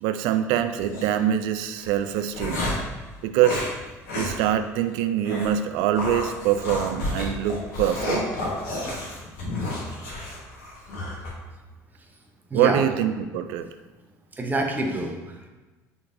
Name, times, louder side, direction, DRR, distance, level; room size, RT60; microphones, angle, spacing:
voice 1, 0.0-2.7 3.2-3.7 4.1-8.2 12.5-13.7, right 10 dB, 75° right, 10 dB, 0.3 m, -24 dB
sound 1, 0.8-1.1 1.8-2.9 3.4-3.7 4.1-4.4 4.7-4.8 5.2-5.5 6.0-11.3, left 1 dB, 80° left, 1.2 m, -31 dB
voice 2, 12.5-12.8 14.3-15.5, right 2 dB, 20° right, 2 dB, 0.7 m, -27 dB
4.6 x 3.9 x 2.6 m, 1.2 s
hypercardioid pair, 75°, 8 cm